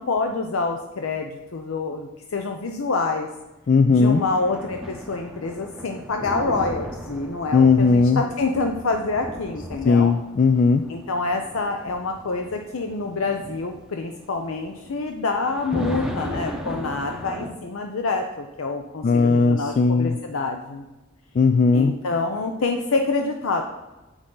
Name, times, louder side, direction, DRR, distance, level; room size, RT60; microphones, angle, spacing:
voice 1, 0.0-3.3 3.9-10.1 10.9-20.8 21.7-23.6, left 3 dB, 80° left, 4 dB, 0.6 m, -27 dB
voice 2, 3.7-4.2 7.5-8.2 9.8-10.9 19.0-20.2 21.4-22.0, left 4 dB, 40° left, 8 dB, 0.3 m, -17 dB
sound 1, 4.1-17.5, equal, 5° right, 0.7 m, -36 dB
7.7 x 6.2 x 3.8 m, 1.1 s
head